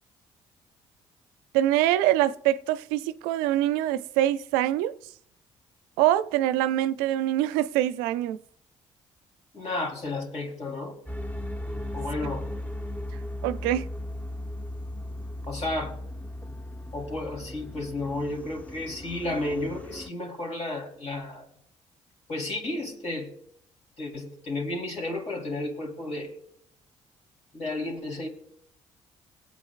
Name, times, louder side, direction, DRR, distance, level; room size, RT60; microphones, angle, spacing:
voice 1, 1.5-4.9 6.0-8.4 13.4-13.9, right 13 dB, 80° right, 0.4 m, -24 dB
voice 2, 9.5-10.9 11.9-12.4 15.5-15.9 16.9-21.5 22.3-23.3 24.0-26.3 27.5-28.3, left 2 dB, 45° left, 3.2 m, -32 dB
sound 1, 11.1-20.1, left 1 dB, 10° left, 0.8 m, -37 dB
21.5 x 8.3 x 2.4 m
hypercardioid pair, 50°, 15 cm